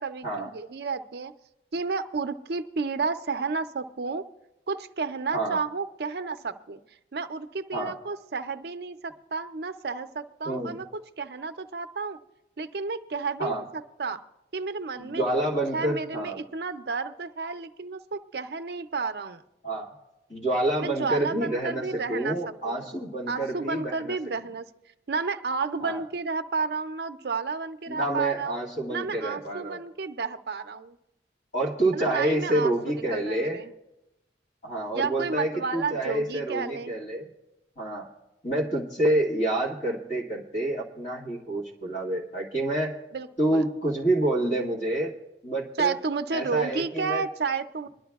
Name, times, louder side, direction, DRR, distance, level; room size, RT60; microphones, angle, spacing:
voice 1, 0.0-1.3 1.7-4.2 4.7-6.8 7.1-12.2 12.6-14.2 14.5-15.5 15.7-19.4 20.8-22.4 22.6-22.9 23.3-24.7 25.1-28.6 28.9-31.0 31.9-33.7 34.9-36.9 43.1-43.6 45.8-47.9, right 4 dB, 60° right, 9 dB, 0.5 m, -31 dB
voice 2, 10.4-10.8 13.4-13.6 15.0-16.4 19.6-19.9 20.3-24.2 25.8-26.0 27.9-29.8 31.5-33.6 34.6-37.3 37.8-38.1 38.4-43.0 43.4-45.1 45.4-46.0 46.3-47.2, right 1 dB, 40° left, -2 dB, 2.0 m, -28 dB
23.0 x 11.5 x 2.3 m, 0.94 s
head